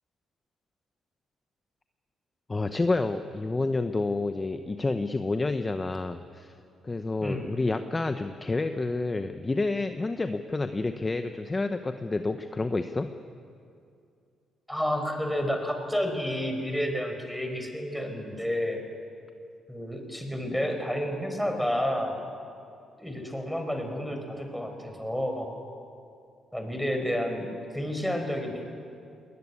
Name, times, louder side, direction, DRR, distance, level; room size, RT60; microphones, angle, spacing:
voice 1, 2.5-6.5 6.8-13.1, left 3 dB, 25° left, 8 dB, 0.8 m, -29 dB
voice 2, 7.2-7.6 14.7-18.8 19.7-22.2 23.0-25.6 26.5-28.6, equal, ahead, 4 dB, 4.6 m, -30 dB
21.0 x 19.0 x 9.8 m, 2.4 s
cardioid pair, 90°, 0 cm